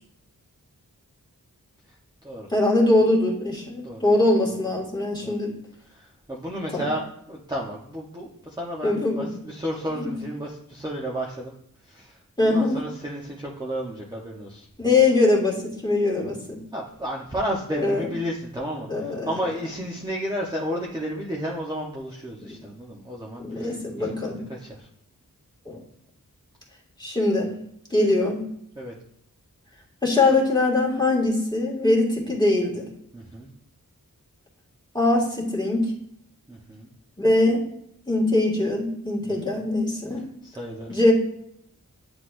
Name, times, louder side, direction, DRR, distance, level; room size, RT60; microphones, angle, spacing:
voice 1, 2.5-5.5 6.7-6.9 8.8-9.3 10.1-10.2 12.4-12.8 14.8-16.6 17.7-18.1 18.9-19.3 22.4-22.5 23.4-24.4 25.7-25.8 27.0-27.5 27.9-28.4 30.0-32.9 34.9-35.9 37.2-37.6 38.1-40.2 40.9-41.1, left 2 dB, 10° left, -3 dB, 1.9 m, -22 dB
voice 2, 5.8-11.5 11.9-14.7 16.7-24.9 28.8-28.9 30.2-30.3 33.1-33.5 36.5-36.9 39.2-39.6 40.4-40.9, equal, 10° right, -4 dB, 0.9 m, -32 dB
9.6 x 4.0 x 2.6 m, 0.73 s
wide cardioid pair, 60°, 35 cm